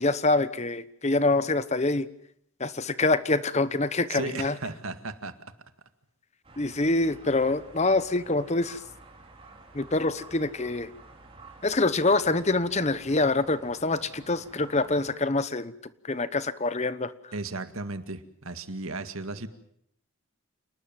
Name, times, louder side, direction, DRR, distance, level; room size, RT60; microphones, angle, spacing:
voice 1, 0.0-2.1 2.6-4.6 6.6-8.8 9.7-10.9 11.6-15.7 16.1-17.1, left 2 dB, 30° left, 15 dB, 1.0 m, -25 dB
voice 2, 4.1-5.3 17.3-19.5, right 3 dB, 75° right, 10 dB, 2.0 m, -35 dB
sound 1, 6.4-15.1, right 2 dB, 25° right, 4.5 m, -51 dB
29.0 x 19.5 x 7.6 m, 0.72 s
head